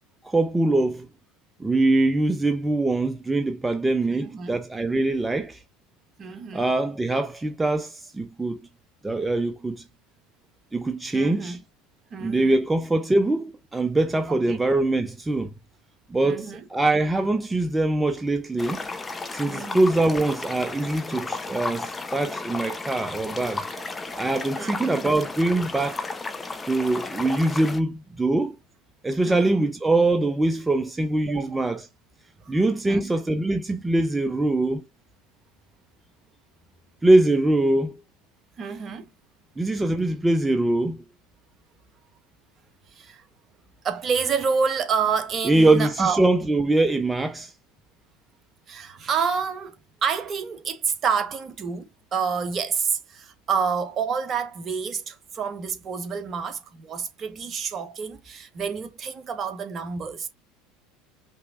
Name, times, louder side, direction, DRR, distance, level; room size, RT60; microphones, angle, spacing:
voice 1, 0.2-1.1 1.6-5.6 6.5-8.6 9.0-9.8 10.7-11.6 12.2-15.5 16.1-18.8 19.3-23.6 24.2-26.1 26.7-28.6 29.0-31.8 32.5-34.9 37.0-37.9 39.6-41.0 45.4-47.5, right 2 dB, 15° right, 0.7 m, -23 dB
voice 2, 4.1-4.5 6.2-6.6 11.1-11.6 12.1-12.5 14.3-14.6 16.2-16.6 19.5-19.9 24.0-24.2 24.6-25.0 29.2-29.7 31.3-31.6 32.4-32.6 32.8-33.1 38.6-39.1 42.9-43.2 43.8-46.3 48.7-49.8 50.0-60.3, right 6 dB, 40° right, 1.2 m, -28 dB
sound 1, 18.6-27.8, left 3 dB, 20° left, 0.9 m, -34 dB
5.5 x 3.2 x 2.6 m
hypercardioid pair, 85°, 0 cm